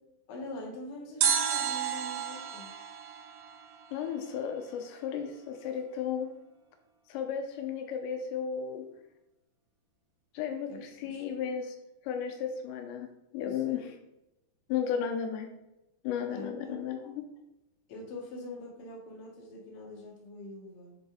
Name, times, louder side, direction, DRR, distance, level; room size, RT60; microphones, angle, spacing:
voice 1, 0.3-2.7 10.7-11.2 13.4-13.8 16.3-16.8 17.9-21.0, left 1 dB, 45° left, -2 dB, 1.8 m, -44 dB
sound 1, 1.2-4.3 4.5-4.6, right 8 dB, 75° right, 2.4 m, -32 dB
voice 2, 3.9-6.3 7.1-8.9 10.3-11.8 12.0-13.9 14.7-15.5 16.0-17.2, left 7 dB, 90° left, 5 dB, 3.1 m, -34 dB
9.6 x 4.3 x 3.9 m, 0.91 s
omnidirectional pair, 5.1 m